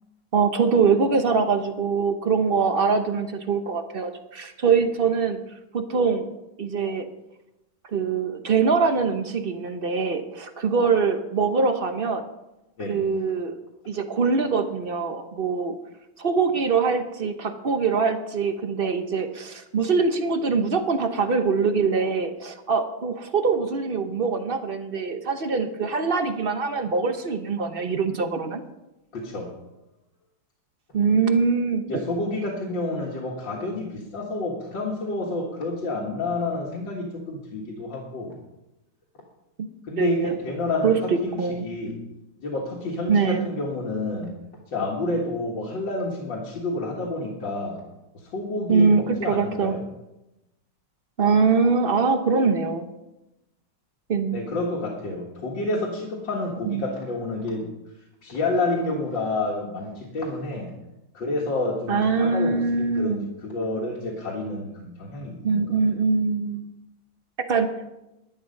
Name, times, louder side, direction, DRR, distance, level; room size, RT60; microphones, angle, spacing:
voice 1, 0.3-5.4 5.7-6.3 6.6-7.1 7.9-12.2 12.9-13.5 13.9-15.8 16.2-28.6 30.9-31.8 39.6-39.7 40.0-40.4 40.8-41.0 41.4-41.7 43.1-43.5 48.7-49.8 51.2-52.9 54.1-54.4 56.7-56.8 61.9-63.3 65.4-66.7 67.5-67.9, right 5 dB, 50° right, 7 dB, 0.7 m, -23 dB
voice 2, 29.1-29.5 31.9-38.4 39.9-42.0 42.4-44.3 44.7-47.8 48.1-49.8 54.3-57.7 58.2-60.7 61.1-65.8, left 2 dB, 85° left, -3 dB, 2.4 m, -29 dB
11.0 x 11.0 x 5.3 m, 0.94 s
omnidirectional pair, 2.0 m